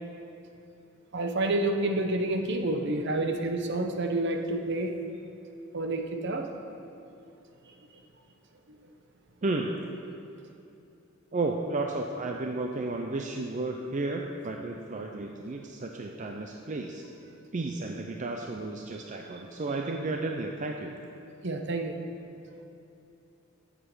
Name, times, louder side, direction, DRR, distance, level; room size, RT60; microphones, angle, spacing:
voice 1, 1.1-4.9 5.7-6.5 8.7-8.8 21.4-22.0 22.5-22.6, right 2 dB, 55° right, 4 dB, 0.9 m, -29 dB
voice 2, 11.3-17.0 17.5-20.9, right 2 dB, 35° right, 2 dB, 0.5 m, -33 dB
9.8 x 7.5 x 6.1 m, 2.7 s
head